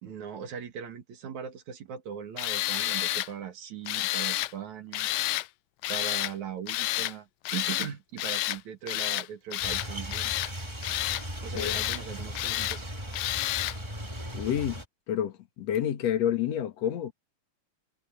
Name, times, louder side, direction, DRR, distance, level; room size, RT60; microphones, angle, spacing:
voice 1, 0.0-5.1 5.9-10.3 11.4-12.9, right 8 dB, 70° right, 3.4 m, -39 dB
Tools, 2.4-3.3 3.9-4.5 4.9-5.5 5.8-6.3 6.7-7.1 7.5-7.9 8.2-8.6 8.9-9.3 9.5-10.5 10.8-11.2 11.6-12.0 12.4-12.8 13.1-13.8, left 17 dB, 80° left, 1.6 m, -30 dB
sound 1, 9.6-14.9, equal, 10° right, 2.2 m, -38 dB
voice 2, 14.3-14.8 15.1-17.1, left 10 dB, 60° left, 2.8 m, -29 dB
omnidirectional pair, 3.4 m